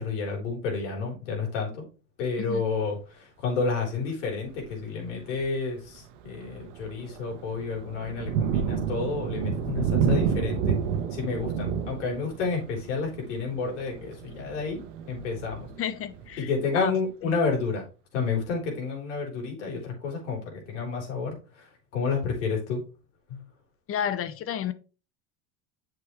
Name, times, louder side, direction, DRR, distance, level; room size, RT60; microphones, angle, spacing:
voice 1, 0.0-1.8 2.2-10.8 11.1-14.8 15.1-15.7 16.4-17.8 18.1-22.8 23.3-23.4, left 4 dB, 80° left, 0 dB, 4.1 m, -30 dB
Thunder, 4.5-4.8 5.4-5.5 6.0-16.5, right 6 dB, 80° right, 1.1 m, -30 dB
voice 2, 15.8-16.5 16.7-16.9 17.2-17.3 23.9-24.7, left 9 dB, 40° left, 13 dB, 0.9 m, -31 dB
8.4 x 6.2 x 3.2 m, 0.34 s
hypercardioid pair, 95°, 36 cm